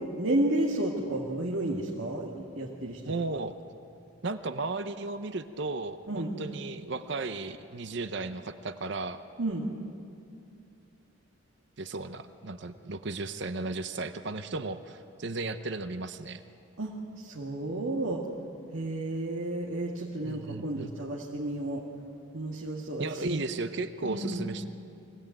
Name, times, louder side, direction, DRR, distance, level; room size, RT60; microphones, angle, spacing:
voice 1, 0.0-3.1 6.1-6.3 9.4-9.7 16.8-18.2 18.7-21.8 22.3-23.4 24.0-24.4, right 1 dB, 70° right, -2 dB, 2.0 m, -32 dB
voice 2, 3.1-3.6 4.2-9.2 11.8-16.4 20.2-20.9 23.0-24.7, right 3 dB, 55° right, 10 dB, 0.7 m, -35 dB
23.5 x 17.0 x 9.1 m, 2.6 s
head